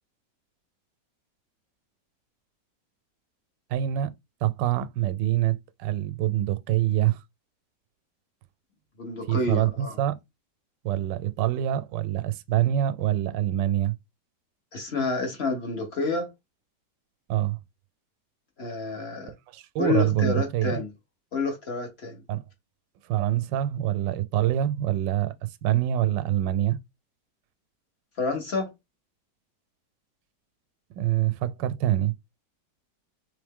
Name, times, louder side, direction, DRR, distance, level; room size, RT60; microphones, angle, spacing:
voice 1, 3.7-4.1 4.4-7.2 9.3-10.2 10.8-13.9 17.3-17.6 19.2-20.8 22.3-22.4 23.1-25.3 25.6-26.8 31.0-32.1, right 12 dB, 85° right, 1.2 m, -25 dB
voice 2, 9.0-10.0 14.7-16.3 18.6-19.3 19.8-20.9 21.3-22.2 28.2-28.7, left 3 dB, 40° left, 1.2 m, -29 dB
3.6 x 3.3 x 3.6 m
omnidirectional pair, 1.9 m